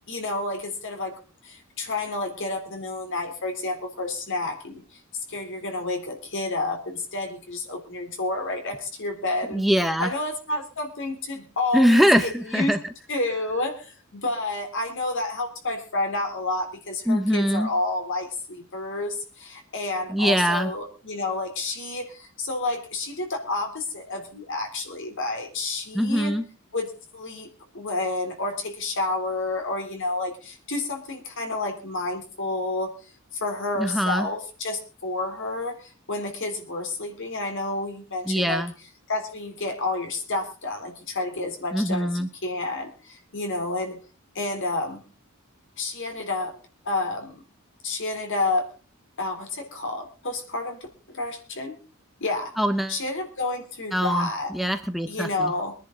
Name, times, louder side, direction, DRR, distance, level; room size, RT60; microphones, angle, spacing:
voice 1, 0.1-1.2 1.4-5.0 5.3-9.6 10.0-12.7 13.1-26.3 26.7-27.5 27.7-32.9 33.3-38.6 39.1-44.0 44.4-45.0 45.8-46.5 46.8-47.4 47.8-48.7 49.2-51.8 52.2-52.5 52.9-54.5 55.1-55.7, left 2 dB, 60° left, 4 dB, 3.5 m, -30 dB
voice 2, 9.5-10.1 11.7-12.8 17.1-17.7 20.1-20.7 25.9-26.4 33.8-34.3 38.3-38.7 41.7-42.3 52.6-53.0 53.9-55.5, equal, ahead, 7 dB, 0.8 m, -22 dB
23.0 x 10.5 x 3.9 m, 0.34 s
head